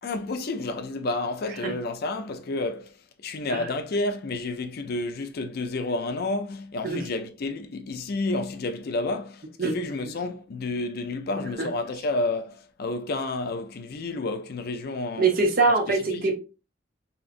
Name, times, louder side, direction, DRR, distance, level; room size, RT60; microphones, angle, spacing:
voice 1, 0.0-3.0 3.2-15.3 15.7-15.8 16.1-16.3, left 2 dB, 50° left, 0.4 m, -30 dB
voice 2, 15.2-16.3, right 3 dB, 45° right, 0.8 m, -23 dB
3.8 x 2.8 x 2.5 m
head